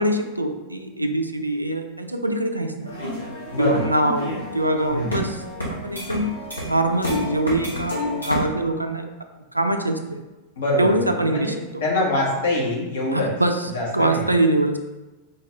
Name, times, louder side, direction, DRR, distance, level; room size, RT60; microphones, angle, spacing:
voice 1, 0.0-2.9 3.6-5.4 5.8-6.3 6.6-9.1 9.5-10.2 10.8-11.6 13.1-13.6 13.9-14.8, right 1 dB, 85° right, 6 dB, 0.3 m, -23 dB
sound 1, 2.9-8.5, left 1 dB, 85° left, 1.1 m, -30 dB
voice 2, 3.5-3.9 4.9-5.3 10.6-11.5 11.8-13.3 13.7-14.3, left 1 dB, 60° left, -3 dB, 0.9 m, -24 dB
4.0 x 2.5 x 3.2 m, 1.1 s
figure-of-eight pair, 90°, 0 cm